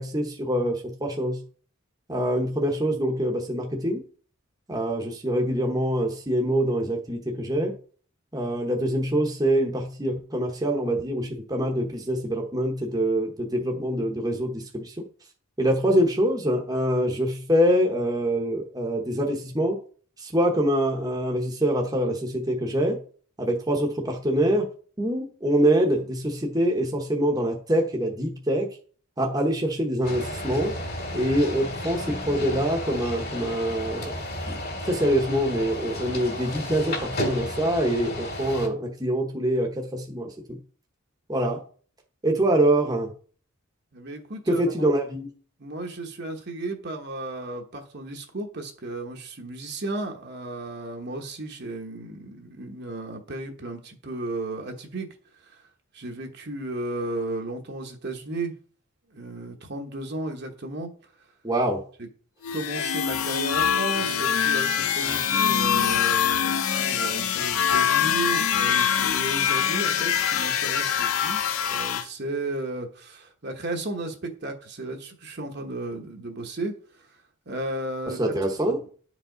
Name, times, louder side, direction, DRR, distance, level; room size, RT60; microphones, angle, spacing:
voice 1, 0.0-1.4 2.1-4.0 4.7-7.7 8.3-14.9 15.6-19.8 20.2-23.0 23.4-24.7 25.0-28.7 29.2-30.8 31.1-34.1 34.5-34.6 34.8-40.3 41.3-41.6 42.2-43.1 44.5-45.3 61.4-61.8 78.2-78.8, right 1 dB, 20° right, 1.0 m, -25 dB
sound 1, 30.0-38.7, left 1 dB, 45° left, 2.3 m, -33 dB
voice 2, 43.9-44.9 45.6-55.1 55.4-55.6 55.9-58.5 59.1-60.9 62.5-76.7 77.5-78.2 78.6-78.7, right 2 dB, 50° right, 1.1 m, -34 dB
sound 2, 62.4-72.0, left 8 dB, 85° left, 0.6 m, -24 dB
9.9 x 5.0 x 3.9 m
head